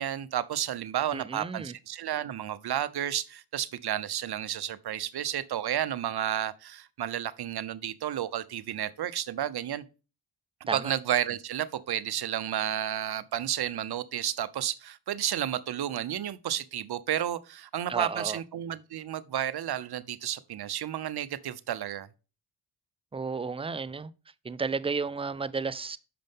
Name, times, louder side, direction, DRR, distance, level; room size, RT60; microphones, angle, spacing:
voice 1, 0.0-9.8 10.7-22.1, right 11 dB, 55° right, 0.7 m, -32 dB
voice 2, 1.1-1.7 10.7-10.9 17.9-18.4 23.1-24.1 24.4-26.0, right 4 dB, 15° right, 0.4 m, -32 dB
6.7 x 5.2 x 3.5 m
supercardioid pair, 45°, 48 cm